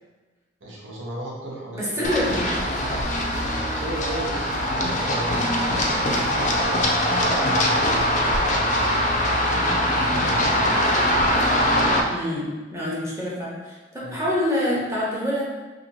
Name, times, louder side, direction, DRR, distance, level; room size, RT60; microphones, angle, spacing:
voice 1, 0.6-2.0 3.7-5.4 6.0-9.0 14.0-14.2, right 1 dB, 85° right, -4 dB, 0.8 m, -36 dB
voice 2, 1.7-2.5 12.1-15.5, left 1 dB, 15° right, -6 dB, 0.8 m, -26 dB
Run, 2.0-12.0, equal, 40° left, 0.4 m, -22 dB
2.8 x 2.5 x 4.0 m, 1.3 s
head